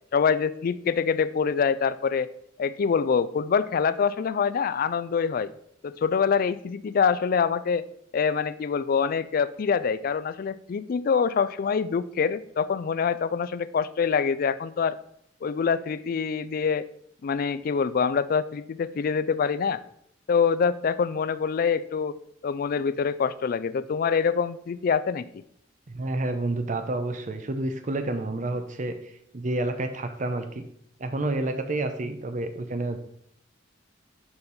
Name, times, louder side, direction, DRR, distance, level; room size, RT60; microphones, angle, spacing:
voice 1, 0.1-2.3 2.6-5.5 5.8-7.8 8.1-15.0 15.4-16.9 17.2-19.8 20.3-22.1 22.4-25.3, left 6 dB, 50° left, 15 dB, 0.3 m, -25 dB
voice 2, 25.9-30.6 31.0-33.0, right 2 dB, 40° right, 7 dB, 0.6 m, -29 dB
6.9 x 5.2 x 4.1 m, 0.70 s
head